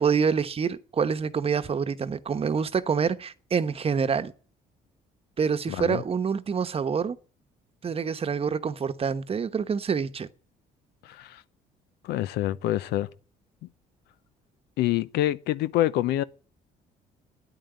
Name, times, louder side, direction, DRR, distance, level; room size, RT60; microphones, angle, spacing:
voice 1, 0.0-4.3 5.4-7.2 7.8-10.3, right 6 dB, 35° right, 1.0 m, -26 dB
voice 2, 5.7-6.0 11.0-11.4 12.0-13.1 14.8-16.2, left 14 dB, 85° left, 0.7 m, -26 dB
9.9 x 8.9 x 9.3 m
cardioid pair, 95°, 16 cm